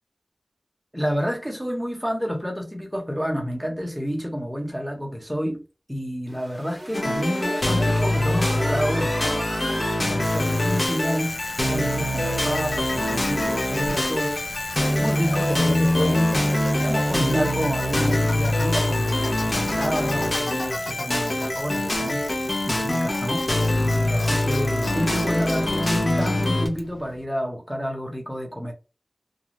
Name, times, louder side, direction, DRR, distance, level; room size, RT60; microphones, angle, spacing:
voice 1, 0.9-5.6 5.9-9.6 10.0-14.4 15.0-16.4 16.8-22.3 22.7-28.7, equal, ahead, 1.1 m, -29 dB
sound 1, 6.3-11.8, right 1 dB, 40° right, 0.9 m, -36 dB
sound 2, 6.9-26.7, left 1 dB, 55° left, 0.8 m, -24 dB
Bicycle, 10.2-27.3, left 2 dB, 75° left, 0.5 m, -36 dB
2.6 x 2.2 x 3.2 m
wide cardioid pair, 55°, 0 cm